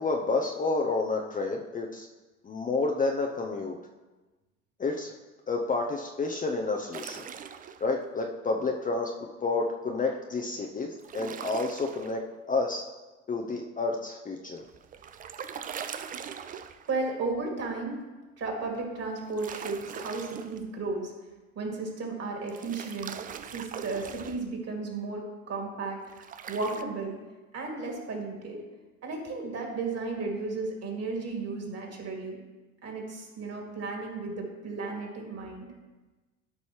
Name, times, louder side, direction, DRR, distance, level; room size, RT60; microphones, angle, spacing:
voice 1, 0.0-2.1 2.4-3.8 4.8-5.1 5.5-7.3 7.8-9.1 9.4-12.2 12.5-12.8 13.3-14.6, left 3 dB, 20° left, 1 dB, 0.7 m, -30 dB
sound 1, 6.9-7.9 11.0-12.1 14.6-17.0 19.2-20.6 22.5-24.4 26.1-26.8, right 7 dB, 20° right, 0.4 m, -41 dB
voice 2, 16.9-18.0 18.4-21.1 21.5-23.1 23.5-27.2 27.5-28.6 29.0-32.4 32.8-35.7, right 3 dB, 40° right, 0 dB, 2.6 m, -34 dB
12.5 x 5.4 x 3.2 m, 1.2 s
figure-of-eight pair, 65°, 40 cm